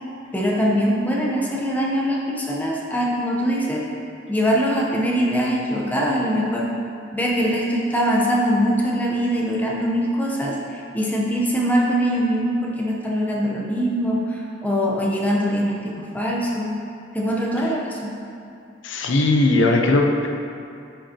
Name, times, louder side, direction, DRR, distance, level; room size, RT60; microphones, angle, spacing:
voice 1, 0.3-3.8 4.3-6.7 7.1-16.7 17.1-18.1, equal, 10° left, -3 dB, 0.8 m, -22 dB
voice 2, 18.8-20.3, left 2 dB, 65° left, 2 dB, 0.6 m, -18 dB
9.9 x 5.2 x 2.9 m, 2.5 s
head